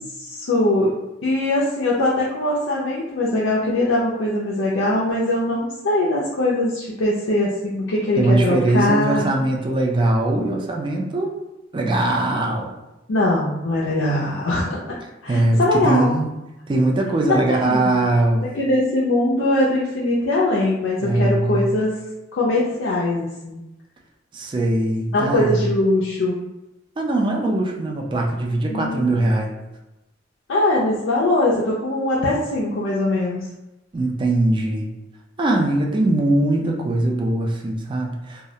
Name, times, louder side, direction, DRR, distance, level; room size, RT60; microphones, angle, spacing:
voice 1, 0.2-0.9 1.2-9.3 13.1-15.0 15.2-16.1 17.2-18.0 18.5-21.9 22.3-23.6 25.1-26.3 28.7-29.4 30.5-33.5, left 1 dB, 85° left, -6 dB, 0.4 m, -21 dB
voice 2, 8.2-11.3 11.7-12.7 15.3-16.3 16.7-18.5 21.0-21.7 24.3-25.7 27.0-29.5 33.9-34.9 35.4-38.5, right 2 dB, 25° right, 0 dB, 0.3 m, -21 dB
2.3 x 2.0 x 2.7 m, 0.98 s
head